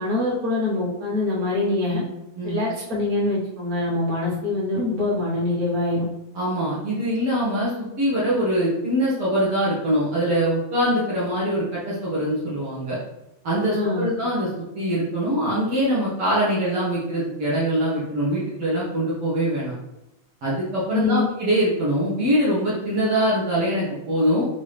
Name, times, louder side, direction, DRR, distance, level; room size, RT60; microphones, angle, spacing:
voice 1, 0.0-2.0 2.4-6.0 13.7-14.1 20.9-21.3, left 2 dB, 35° right, -7 dB, 1.3 m, -24 dB
voice 2, 6.3-13.0 13.4-14.5 14.7-19.8 20.4-24.5, equal, 60° right, -8 dB, 1.7 m, -23 dB
5.5 x 2.8 x 3.3 m, 0.92 s
omnidirectional pair, 3.4 m